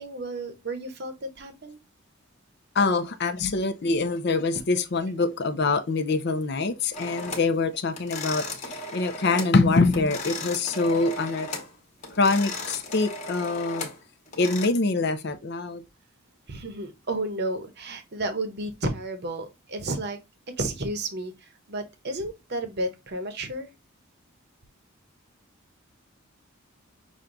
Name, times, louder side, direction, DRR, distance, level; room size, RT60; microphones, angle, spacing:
voice 1, 0.0-1.8 16.5-20.2 20.6-23.7, right 2 dB, 50° right, 0.8 m, -32 dB
voice 2, 2.7-11.5 12.2-13.9 14.4-15.8, left 3 dB, 50° left, 0.5 m, -24 dB
sound 1, 6.9-7.5 7.9-9.6 9.8-11.7 12.0-14.7, left 2 dB, 30° left, 1.2 m, -36 dB
6.1 x 2.3 x 3.7 m
head